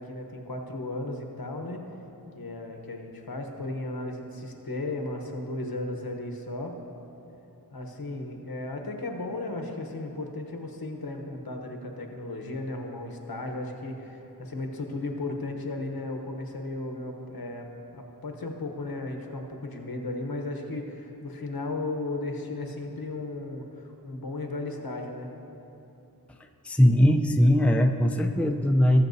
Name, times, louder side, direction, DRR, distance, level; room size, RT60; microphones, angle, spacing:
voice 1, 0.0-1.8 2.3-6.8 7.7-25.3, left 2 dB, 70° left, 3 dB, 1.0 m, -35 dB
voice 2, 26.6-29.1, equal, 5° left, 4 dB, 0.5 m, -20 dB
18.5 x 7.1 x 2.7 m, 3.0 s
wide cardioid pair, 50°, 38 cm